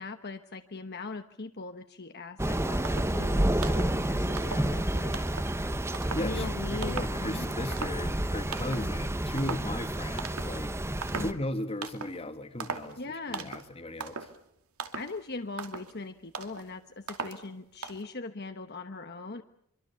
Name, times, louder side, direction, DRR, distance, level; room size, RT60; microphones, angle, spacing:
voice 1, 0.0-5.1 6.2-7.5 8.7-8.9 11.1-11.4 13.0-13.5 14.9-19.4, left 3 dB, 50° left, 7 dB, 1.1 m, -40 dB
Thunder / Rain, 2.4-11.3, right 1 dB, 10° right, 1.0 m, -30 dB
sound 1, 2.4-2.5 2.8-3.2 3.6-4.0 4.4-4.8 5.1-5.6 5.9-6.4 6.8-7.2 7.5-8.3 8.5-8.9 9.4-9.7 10.2-10.6 11.0-11.4 11.8-12.2 12.6-13.0 13.3-13.7 14.0-14.4 14.8-15.2 15.5-15.9 16.3-16.6 17.1-17.5 17.8-18.0, right 5 dB, 80° right, 2.6 m, -39 dB
voice 2, 4.4-4.9 6.1-10.7 11.2-13.0 13.3-14.3, left 1 dB, 25° left, 9 dB, 1.9 m, -36 dB
26.0 x 24.0 x 7.0 m, 0.75 s
head